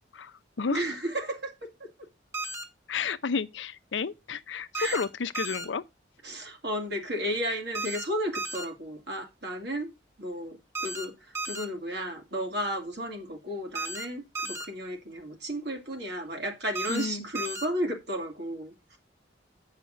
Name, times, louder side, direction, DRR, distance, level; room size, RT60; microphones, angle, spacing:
voice 1, 0.1-0.8 2.9-5.8 16.9-17.3, left 5 dB, 80° left, 0.6 m, -31 dB
voice 2, 0.7-2.1 4.8-5.0 6.2-9.9 10.2-19.0, equal, 60° right, 2.4 m, -33 dB
sound 1, 2.3-2.6 4.7-5.1 5.3-5.7 7.8-8.1 8.4-8.7 10.8-11.1 11.4-11.7 13.8-14.1 14.4-14.7 16.8-17.1 17.4-17.7, right 2 dB, 15° right, 1.3 m, -34 dB
7.9 x 5.7 x 5.0 m
head